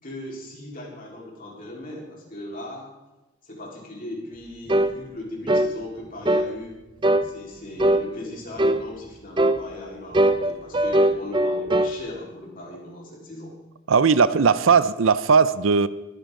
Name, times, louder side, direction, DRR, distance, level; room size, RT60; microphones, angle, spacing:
voice 1, 0.0-2.9 3.4-6.8 7.2-13.5 14.1-14.4, left 1 dB, 45° left, -3 dB, 4.1 m, -38 dB
sound 1, 4.7-5.0 5.5-5.7 6.3-6.5 7.0-7.3 7.8-8.1 8.6-8.8 9.4-9.6 10.1-11.9, right 1 dB, 25° right, 0.5 m, -20 dB
voice 2, 13.9-15.9, right 5 dB, 75° right, 16 dB, 0.6 m, -18 dB
22.5 x 10.0 x 3.8 m, 1.0 s
head